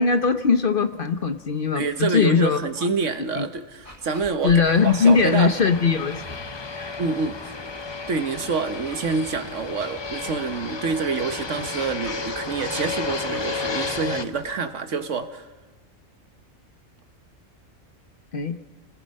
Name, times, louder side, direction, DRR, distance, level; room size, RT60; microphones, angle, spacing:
voice 1, 0.0-2.6 3.4-3.5 4.4-6.2 6.8-6.9 18.3-18.6, left 5 dB, 45° left, 9 dB, 0.9 m, -20 dB
voice 2, 1.7-5.5 7.0-7.6 8.1-15.5, right 4 dB, 65° right, 9 dB, 1.4 m, -27 dB
Dog, 3.8-14.6, equal, 15° right, 3.5 m, -46 dB
Fixed-wing aircraft airplane, 4.6-14.2, left 4 dB, 25° left, 0.6 m, -32 dB
29.5 x 19.5 x 5.4 m, 1.3 s
omnidirectional pair, 1.4 m